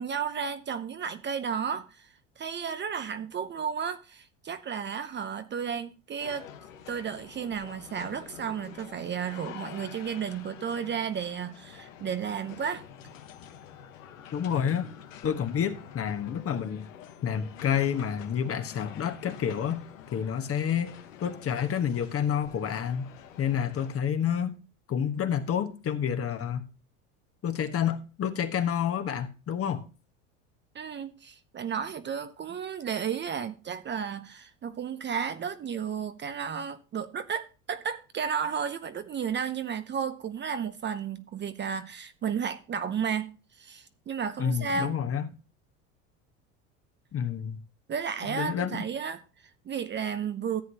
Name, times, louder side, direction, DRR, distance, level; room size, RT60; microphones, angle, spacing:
voice 1, 0.0-2.1 2.4-6.5 6.9-12.8 30.7-45.0 47.9-50.6, right 7 dB, 30° right, 0.7 m, -33 dB
sound 1, 6.2-24.0, left 9 dB, 85° left, 1.2 m, -47 dB
voice 2, 14.3-14.9 15.2-16.9 17.2-19.8 20.1-23.1 23.4-24.5 24.9-26.7 27.4-29.8 44.4-45.3 47.1-47.6 48.3-48.8, left 8 dB, 35° left, 1.3 m, -29 dB
14.0 x 7.8 x 2.9 m
hypercardioid pair, 90°, 38 cm